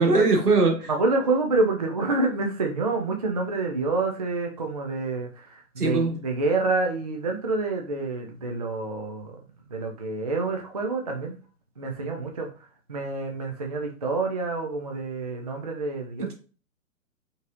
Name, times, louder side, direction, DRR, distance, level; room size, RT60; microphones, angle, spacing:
voice 1, 0.0-0.9 5.8-6.2 16.2-16.3, right 3 dB, 80° right, 1 dB, 1.8 m, -21 dB
voice 2, 0.9-9.4 9.7-11.4 11.8-12.5 12.9-16.3, right 3 dB, 30° right, 2 dB, 0.4 m, -27 dB
5.2 x 3.0 x 2.5 m, 0.37 s
figure-of-eight pair, 130°, 45 cm